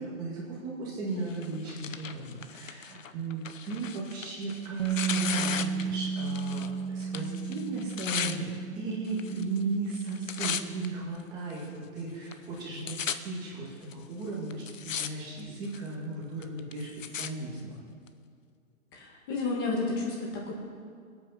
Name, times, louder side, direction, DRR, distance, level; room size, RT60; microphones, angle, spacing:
voice 1, 0.0-8.5 8.7-17.8, right 3 dB, 10° right, -5 dB, 1.9 m, -36 dB
Tearing, 1.3-6.7 7.0-8.4 9.1-9.6 9.9-10.9 11.5-11.6 12.3-12.4 12.6-13.2 13.9-14.0 14.5-15.1 15.4-15.9 16.4-17.3 18.1-18.2, left 7 dB, 65° left, 0.9 m, -36 dB
Bass guitar, 4.8-11.0, right 6 dB, 35° right, 1.0 m, -34 dB
voice 2, 18.9-20.5, left 3 dB, 15° left, -1 dB, 1.7 m, -31 dB
22.0 x 8.7 x 5.7 m, 2.2 s
hypercardioid pair, 170°, 42 cm